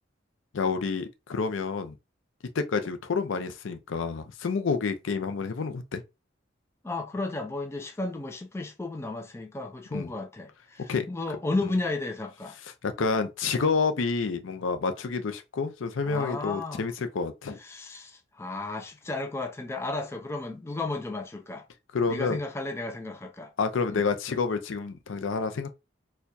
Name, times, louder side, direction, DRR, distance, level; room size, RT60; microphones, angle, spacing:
voice 1, 0.5-1.9 2.5-6.0 9.9-10.1 10.9-11.1 12.8-17.6 21.9-22.4 23.6-25.7, left 4 dB, 70° left, 0.5 m, -29 dB
voice 2, 6.8-12.6 16.1-16.9 17.6-21.7 22.1-23.5 23.9-24.0, left 2 dB, 15° left, 0.4 m, -33 dB
4.4 x 2.2 x 2.6 m
head